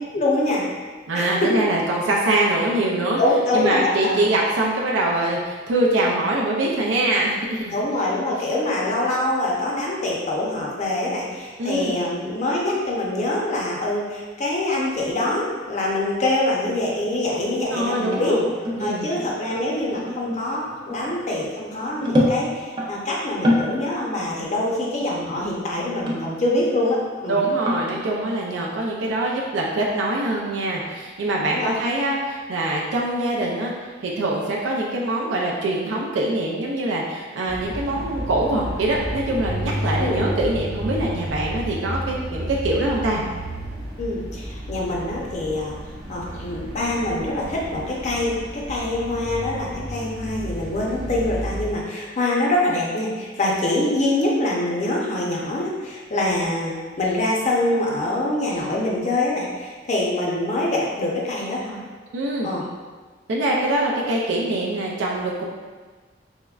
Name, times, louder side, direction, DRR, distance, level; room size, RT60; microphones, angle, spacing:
voice 1, 0.1-0.6 1.1-1.5 3.2-4.2 7.7-18.4 18.8-27.4 31.4-31.8 40.0-40.2 44.0-45.8 46.1-61.8 62.4-62.6, left 1 dB, 40° left, -3 dB, 0.5 m, -24 dB
voice 2, 1.1-3.2 3.5-7.7 11.6-12.0 17.7-18.4 18.8-19.1 27.3-43.2 62.1-62.5 63.3-65.4, right 2 dB, 80° right, -3 dB, 0.4 m, -23 dB
sound 1, 18.1-22.9 23.3-23.8 24.1-24.3 24.7-24.8 25.8-26.9 27.2-28.0, left 1 dB, 25° right, 0.5 m, -26 dB
sound 2, 37.5-51.7, equal, 60° right, 0.8 m, -32 dB
3.5 x 3.1 x 2.3 m, 1.4 s
head